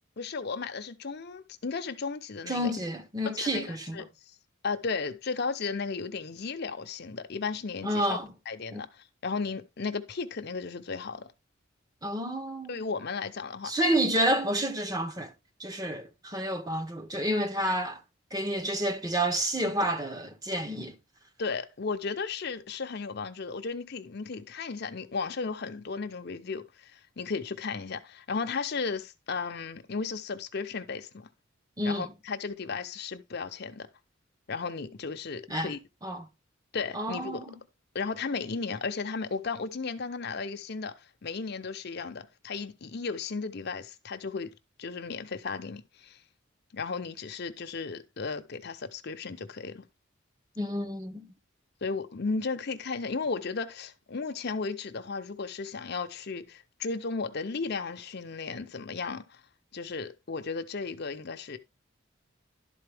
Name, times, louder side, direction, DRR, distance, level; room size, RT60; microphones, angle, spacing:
voice 1, 0.2-2.7 3.3-4.1 4.6-8.2 8.5-11.3 12.7-13.7 21.4-31.3 31.8-33.9 34.5-35.8 36.7-37.4 37.9-44.5 44.8-46.2 46.7-49.8 51.8-59.4 59.7-61.6, left 4 dB, 55° left, 0.6 m, -35 dB
voice 2, 2.5-4.0 7.8-8.3 8.7-8.8 12.0-12.8 13.6-15.3 15.6-18.0 18.3-20.9 31.8-32.1 35.5-35.7 36.0-36.3 36.9-37.4 50.6-51.3, right 1 dB, 20° right, 0.8 m, -29 dB
11.5 x 4.1 x 3.4 m
head